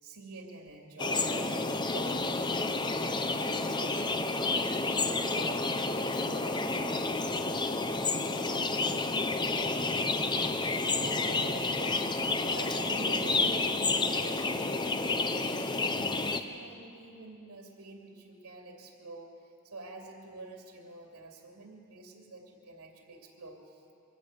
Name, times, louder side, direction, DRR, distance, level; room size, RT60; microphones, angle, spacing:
voice 1, 0.0-4.0 4.5-8.7 9.1-12.1 12.4-23.9, right 2 dB, 80° right, 1 dB, 2.7 m, -47 dB
sound 1, 1.0-16.4, left 3 dB, 20° left, 0.7 m, -30 dB
23.0 x 15.0 x 8.0 m, 2.6 s
head